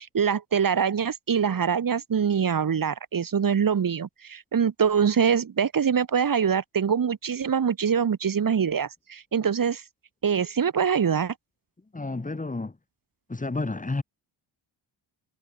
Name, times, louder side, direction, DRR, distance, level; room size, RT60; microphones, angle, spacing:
voice 1, 0.0-9.8 10.2-11.3, right 7 dB, 45° right, 3.6 m, -24 dB
voice 2, 11.9-12.7 13.3-14.0, left 3 dB, 15° left, 4.4 m, -30 dB
wide cardioid pair, 145°, 47 cm